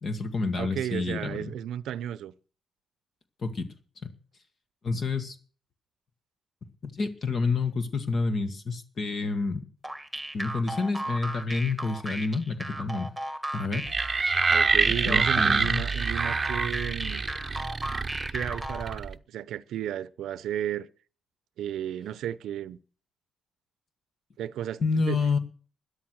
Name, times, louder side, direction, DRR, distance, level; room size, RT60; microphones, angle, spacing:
voice 1, 0.0-1.5 3.4-3.7 4.0-4.1 4.8-5.4 6.8-9.6 10.3-13.1 13.5-13.9 14.9-15.9 24.8-25.4, left 4 dB, 45° left, 1.8 m, -29 dB
voice 2, 0.6-2.3 14.5-17.2 18.3-20.9 21.6-22.8 24.4-24.8 25.1-25.2, right 11 dB, 75° right, 0.7 m, -33 dB
sound 1, 9.8-19.0, right 1 dB, ahead, 1.9 m, -36 dB
sound 2, 13.9-19.1, right 4 dB, 30° right, 0.8 m, -26 dB
13.0 x 10.5 x 6.3 m
cardioid pair, 90°, 0 cm